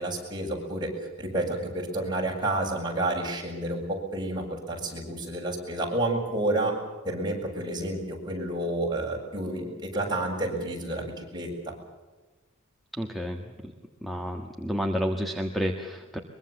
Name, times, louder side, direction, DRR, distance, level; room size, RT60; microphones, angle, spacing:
voice 1, 0.0-6.8 7.0-11.8, right 1 dB, 20° right, -1 dB, 7.1 m, -30 dB
voice 2, 12.9-13.7 14.0-16.2, equal, ahead, 3 dB, 1.5 m, -30 dB
23.5 x 23.0 x 7.2 m, 1.2 s
head